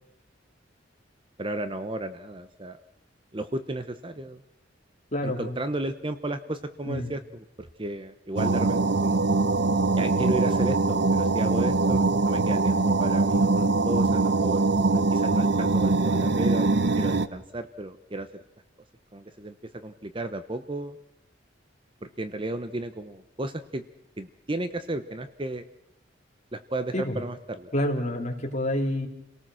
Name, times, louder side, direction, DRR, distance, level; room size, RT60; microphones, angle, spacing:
voice 1, 1.4-2.8 3.3-4.4 5.2-9.2 10.0-18.4 19.1-21.0 22.0-23.8 24.2-25.6 26.5-27.7, right 2 dB, 25° right, 10 dB, 0.9 m, -33 dB
voice 2, 5.1-5.6 6.8-7.1 26.9-27.2 27.7-29.1, left 1 dB, 40° left, 1 dB, 3.3 m, -28 dB
sound 1, 8.4-17.3, right 3 dB, 60° right, 0.9 m, -23 dB
29.0 x 18.5 x 6.3 m, 0.85 s
head